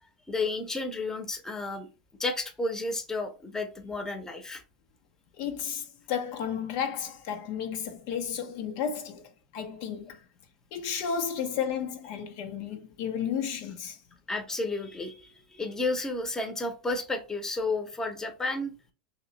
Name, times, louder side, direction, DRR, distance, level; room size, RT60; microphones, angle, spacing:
voice 1, 0.3-1.9 2.2-4.6 14.3-18.7, left 2 dB, 10° left, 0.8 m, -32 dB
voice 2, 5.4-10.2 10.7-14.0, left 7 dB, 55° left, 0.6 m, -33 dB
3.0 x 2.9 x 3.9 m
hypercardioid pair, 105°, 4 cm